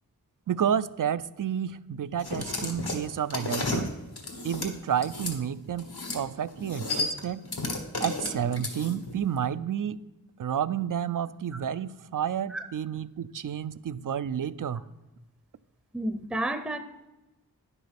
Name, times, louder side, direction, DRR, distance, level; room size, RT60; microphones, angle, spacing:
voice 1, 0.5-3.9 4.4-7.4 8.0-10.0 10.4-14.8, right 9 dB, 60° right, 17 dB, 0.5 m, -30 dB
sound 1, 2.2-5.4 5.8-6.2 6.5-9.1, left 2 dB, 80° left, 1.6 m, -33 dB
voice 2, 15.9-16.8, right 1 dB, ahead, 9 dB, 0.6 m, -30 dB
10.0 x 5.6 x 5.9 m, 1.1 s
wide cardioid pair, 50°, 38 cm